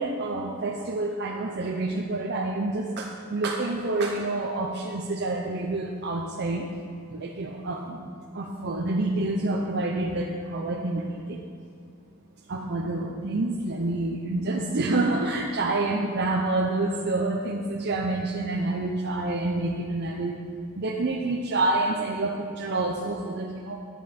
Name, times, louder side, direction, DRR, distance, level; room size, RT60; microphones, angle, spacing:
voice 1, 0.0-6.7 7.1-8.0 8.3-11.4 12.5-20.3 20.8-23.8, right 2 dB, 50° right, 0 dB, 0.6 m, -28 dB
10.5 x 10.0 x 4.3 m, 2.3 s
head